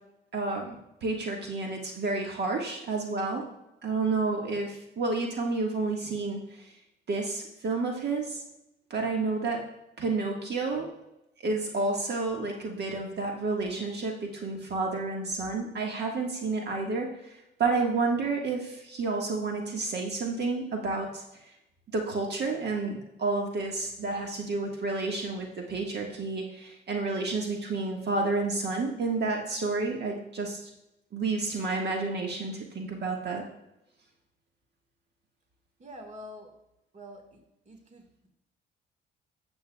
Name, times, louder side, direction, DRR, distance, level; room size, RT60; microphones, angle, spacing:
voice 1, 0.3-0.8 1.0-3.4 3.8-6.7 7.1-8.4 8.9-9.6 10.0-10.9 11.4-21.2 21.9-30.7 31.1-33.4, right 3 dB, 60° right, 1 dB, 1.5 m, -30 dB
voice 2, 35.8-36.5 36.9-38.3, equal, 35° right, 5 dB, 1.6 m, -47 dB
12.0 x 7.8 x 2.2 m, 0.88 s
cardioid pair, 90°, 20 cm